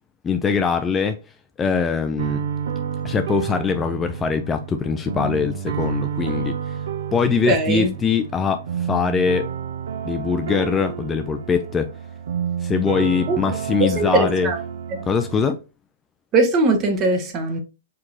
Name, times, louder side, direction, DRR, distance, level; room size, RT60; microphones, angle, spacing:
voice 1, 0.2-1.2 1.6-2.4 3.0-6.8 7.1-9.5 10.0-11.9 12.6-14.5 15.1-15.6, left 5 dB, 15° left, 0.4 m, -22 dB
sound 1, 2.2-15.5, right 8 dB, 65° right, 0.5 m, -30 dB
voice 2, 7.5-7.9 13.3-13.4 14.0-14.6 16.3-17.6, right 2 dB, 30° right, 1.2 m, -20 dB
4.5 x 3.7 x 2.7 m
figure-of-eight pair, 110°, 0 cm